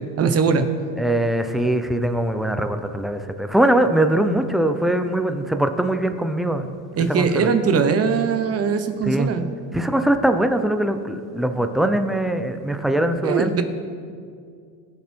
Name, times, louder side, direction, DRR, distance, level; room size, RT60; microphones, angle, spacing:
voice 1, 0.2-0.7 7.0-9.5 13.2-13.6, right 5 dB, 30° right, 9 dB, 1.0 m, -20 dB
voice 2, 1.0-6.7 7.1-7.5 9.1-9.3 9.7-13.6, right 1 dB, ahead, 8 dB, 0.5 m, -21 dB
21.0 x 7.0 x 4.5 m, 2.2 s
supercardioid pair, 120°, 47 cm